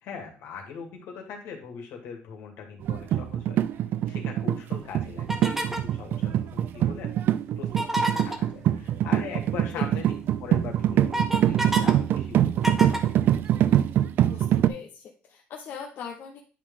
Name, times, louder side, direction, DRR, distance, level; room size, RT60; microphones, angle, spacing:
voice 1, 0.0-7.1 7.6-10.1 10.4-13.0, left 6 dB, 80° left, 2 dB, 2.1 m, -41 dB
sound 1, 2.8-14.7, right 11 dB, 55° right, 0.4 m, -24 dB
sound 2, 5.3-5.9 7.7-8.4 10.0-10.1 10.5-11.9 12.2-13.8, right 1 dB, 5° right, 0.9 m, -29 dB
voice 2, 14.3-16.4, left 7 dB, 60° left, 0 dB, 1.0 m, -40 dB
9.9 x 4.1 x 3.7 m, 0.36 s
cardioid pair, 150°, 4 cm